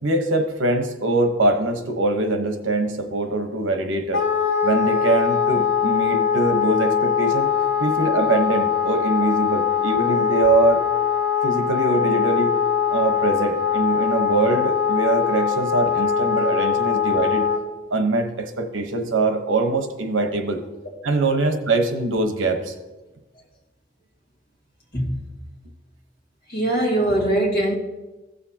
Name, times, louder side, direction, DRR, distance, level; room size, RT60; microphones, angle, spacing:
voice 1, 0.0-4.2 4.6-7.5 7.8-10.8 11.4-12.5 12.9-17.5 17.9-20.6 21.0-22.7, right 2 dB, 80° right, 6 dB, 1.1 m, -22 dB
Wind instrument woodwind instrument, 4.1-17.6, left 7 dB, 70° left, 2.1 m, -22 dB
voice 2, 26.5-27.7, right 1 dB, 50° left, -1 dB, 2.2 m, -21 dB
15.5 x 7.0 x 2.9 m, 1.1 s
head